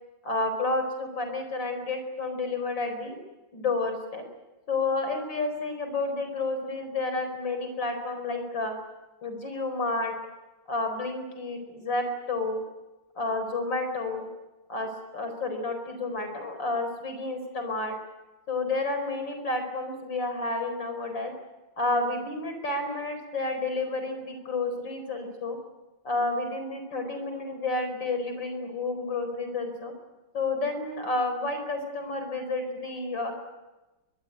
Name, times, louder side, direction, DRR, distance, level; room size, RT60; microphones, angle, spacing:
voice 1, 0.2-3.2 3.5-4.2 4.7-8.7 9.2-10.1 10.7-12.6 13.2-14.3 14.7-18.0 18.5-21.3 21.8-25.6 26.1-29.9 30.3-33.3, left 3 dB, 65° left, 7 dB, 5.4 m, -30 dB
24.0 x 22.0 x 9.2 m, 1.1 s
omnidirectional pair, 2.1 m